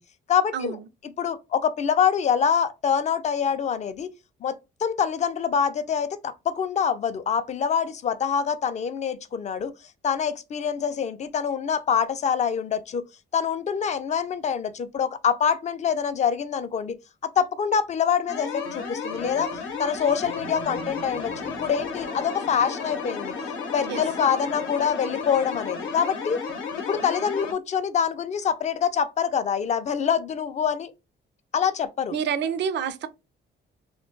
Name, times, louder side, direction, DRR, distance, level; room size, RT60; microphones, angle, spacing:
voice 1, 0.3-0.8 1.2-4.1 4.4-9.7 10.0-13.0 13.3-17.0 17.2-23.4 23.7-26.4 26.8-30.9 31.5-32.1, left 7 dB, 35° left, 0.4 m, -25 dB
sound 1, 18.3-27.5, left 5 dB, 80° left, 0.8 m, -33 dB
sound 2, 19.1-22.2, right 5 dB, 85° right, 0.9 m, -45 dB
voice 2, 32.1-33.1, right 7 dB, 60° right, 0.4 m, -27 dB
2.2 x 2.2 x 3.7 m
cardioid pair, 90°, 20 cm